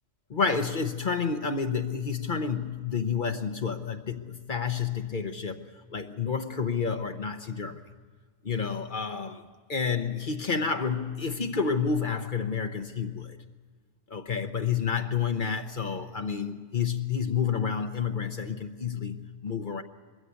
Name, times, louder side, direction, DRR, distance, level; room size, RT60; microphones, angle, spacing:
voice 1, 0.3-7.8 8.4-9.4 9.7-13.4 14.1-19.8, left 6 dB, 45° left, 7 dB, 1.0 m, -30 dB
22.0 x 15.5 x 9.5 m, 1.5 s
omnidirectional pair, 1.2 m